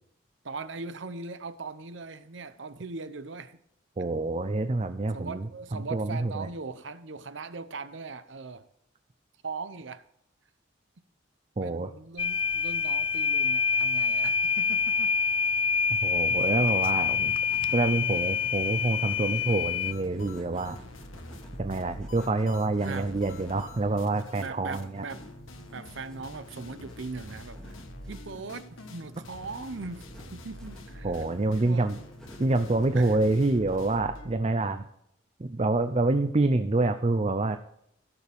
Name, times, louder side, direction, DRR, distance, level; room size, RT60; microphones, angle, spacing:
voice 1, 0.4-3.6 5.1-8.7 9.4-10.0 11.6-15.1 22.8-23.1 24.3-25.2 25.7-27.8 28.1-31.2 31.5-31.9 32.9-33.2, right 4 dB, 65° right, 12 dB, 0.8 m, -40 dB
voice 2, 4.0-6.5 11.6-11.9 16.0-17.3 17.7-20.8 21.6-25.0 31.0-32.0 32.4-34.9 35.4-37.6, right 2 dB, 30° right, 9 dB, 0.5 m, -27 dB
sound 1, 12.2-19.9, left 5 dB, 25° left, 0.4 m, -26 dB
sound 2, 16.2-34.0, equal, 5° left, 2.3 m, -50 dB
sound 3, 19.9-24.5 24.7-24.8 25.1-34.4, left 1 dB, 80° left, 1.3 m, -46 dB
16.5 x 7.0 x 3.5 m, 0.75 s
head